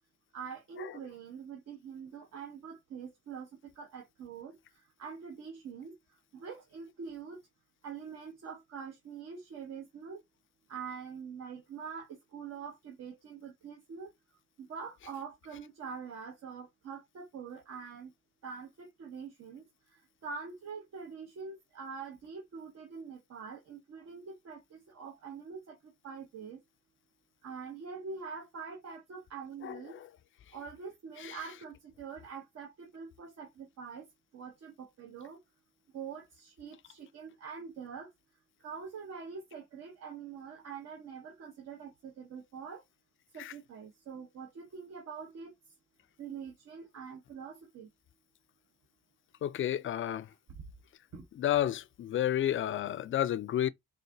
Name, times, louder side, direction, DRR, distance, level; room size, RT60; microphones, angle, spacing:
voice 1, 0.3-6.0 6.3-7.4 7.8-10.2 10.7-14.1 14.6-18.1 18.4-19.6 20.2-26.6 27.4-30.0 30.5-34.1 34.3-35.4 35.9-38.1 38.6-42.8 43.3-45.5 46.2-47.9 51.1-51.3, right 6 dB, 55° right, 0.9 m, -44 dB
voice 2, 49.4-50.3 51.4-53.7, left 11 dB, 45° left, 0.4 m, -30 dB
4.1 x 2.6 x 2.6 m
cardioid pair, 90°, 30 cm